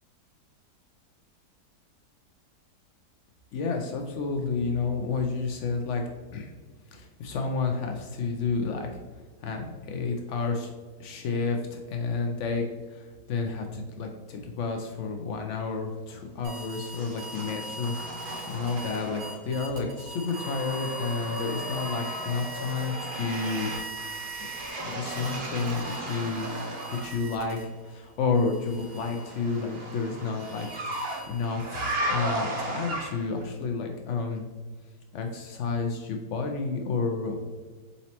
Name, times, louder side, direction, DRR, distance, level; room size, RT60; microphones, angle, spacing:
voice 1, 3.5-6.0 6.3-6.5 6.9-8.9 9.4-10.7 11.0-12.6 12.9-23.7 24.4-24.5 24.8-26.5 27.0-27.6 27.8-34.4 35.1-37.4, left 4 dB, 85° left, 3 dB, 0.6 m, -30 dB
sound 1, 16.4-27.9 28.3-31.7, right 2 dB, 70° right, 1.3 m, -41 dB
sound 2, 16.5-19.6 19.9-27.2 28.7-33.4, right 1 dB, 55° right, 0.7 m, -36 dB
4.1 x 4.0 x 2.8 m, 1.4 s
omnidirectional pair, 1.8 m